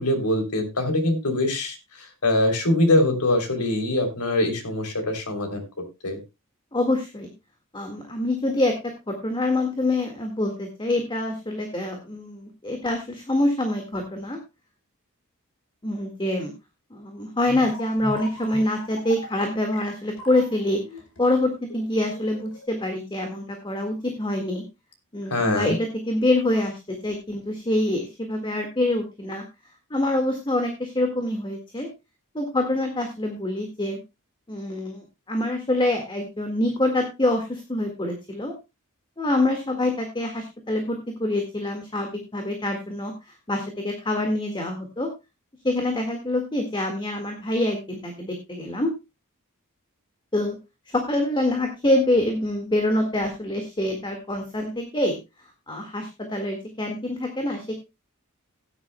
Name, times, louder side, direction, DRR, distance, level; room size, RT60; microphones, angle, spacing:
voice 1, 0.0-5.7 6.0-6.2 25.3-25.8, left 1 dB, 90° left, 6 dB, 3.2 m, -23 dB
voice 2, 6.7-7.3 7.7-14.4 15.8-16.5 16.9-20.8 21.2-24.6 25.1-25.8 26.1-29.4 29.9-31.9 32.3-34.0 34.5-38.5 39.2-45.1 45.6-48.9 50.3-50.6 50.9-55.2 55.7-57.8, left 1 dB, 20° left, 4 dB, 1.8 m, -25 dB
sound 1, 17.4-22.7, left 1 dB, 65° left, 3.4 m, -40 dB
16.5 x 10.0 x 2.2 m, 0.25 s
head